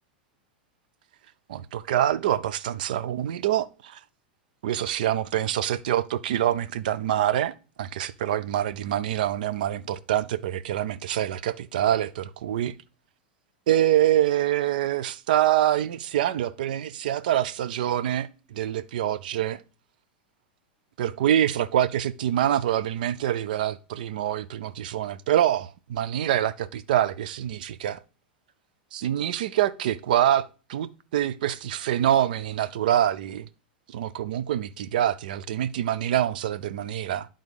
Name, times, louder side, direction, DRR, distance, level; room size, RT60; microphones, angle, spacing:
voice 1, 1.5-4.0 4.6-12.8 13.7-19.6 21.0-28.0 28.9-33.5 33.9-37.3, right 11 dB, 65° right, 0.6 m, -25 dB
10.5 x 3.8 x 5.2 m
hypercardioid pair, 90°, 5 cm